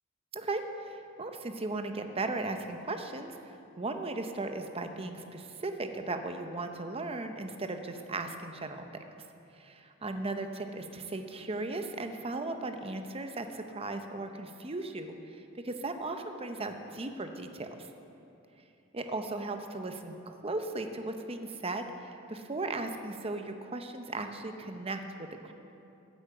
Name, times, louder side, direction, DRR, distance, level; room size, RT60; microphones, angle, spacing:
voice 1, 0.3-8.9 9.6-17.7 18.9-25.5, right 2 dB, 30° right, 6 dB, 0.8 m, -37 dB
9.8 x 8.5 x 7.8 m, 2.7 s
head